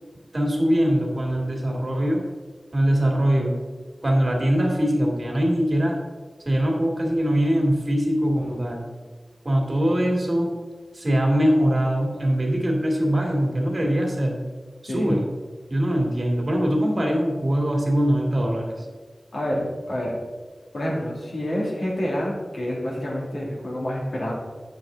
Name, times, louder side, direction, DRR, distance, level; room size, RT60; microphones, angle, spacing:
voice 1, 0.3-2.2 2.7-3.6 4.0-6.0 6.4-8.9 9.4-10.5 10.9-14.4 14.8-15.3 15.7-18.9, equal, 45° right, 0 dB, 2.2 m, -22 dB
voice 2, 19.3-20.2 20.7-24.3, equal, 70° left, -4 dB, 2.5 m, -28 dB
8.4 x 6.6 x 3.8 m, 1.4 s
wide cardioid pair, 55°, 0 cm